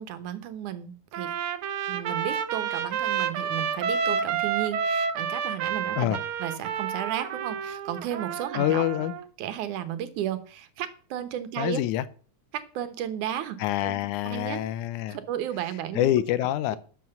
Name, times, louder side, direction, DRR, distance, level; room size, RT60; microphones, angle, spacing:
voice 1, 0.0-1.3 1.9-8.8 9.4-11.8 12.5-13.6 13.8-14.0 14.3-14.6 15.1-16.1, right 10 dB, 85° right, 2.6 m, -33 dB
Trumpet, 1.1-9.2, right 7 dB, 70° right, 1.3 m, -30 dB
voice 2, 8.5-9.1 11.6-12.0 13.6-15.2 15.9-16.8, left 13 dB, 85° left, 2.2 m, -26 dB
12.0 x 6.2 x 7.0 m
omnidirectional pair, 3.4 m